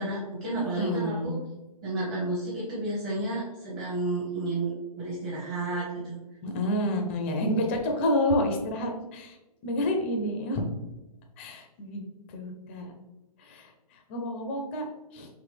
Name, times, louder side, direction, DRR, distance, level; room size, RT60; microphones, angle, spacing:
voice 1, 0.0-1.4 1.8-6.2, right 2 dB, 25° right, -7 dB, 1.0 m, -31 dB
voice 2, 0.5-1.3 6.4-9.4 9.6-10.6 11.4-12.0 12.3-12.9 13.4-14.9 15.1-15.3, left 1 dB, 20° left, 3 dB, 0.4 m, -29 dB
4.0 x 3.1 x 3.2 m, 1.0 s
hypercardioid pair, 155°, 20 cm